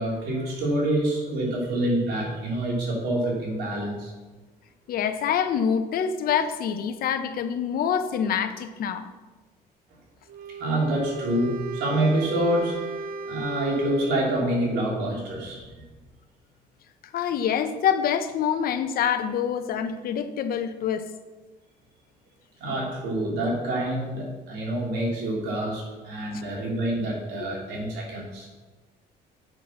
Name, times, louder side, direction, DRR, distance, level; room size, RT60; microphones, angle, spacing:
voice 1, 0.0-4.1 10.6-12.8 13.2-15.6 22.6-28.5, right 1 dB, 80° right, -3 dB, 3.1 m, -27 dB
voice 2, 4.9-9.1 17.1-21.1 26.3-26.4, left 8 dB, 60° left, 9 dB, 0.8 m, -26 dB
Wind instrument woodwind instrument, 10.3-14.6, right 4 dB, 60° right, 0.6 m, -36 dB
7.6 x 6.0 x 6.3 m, 1.2 s
cardioid pair, 110°, 17 cm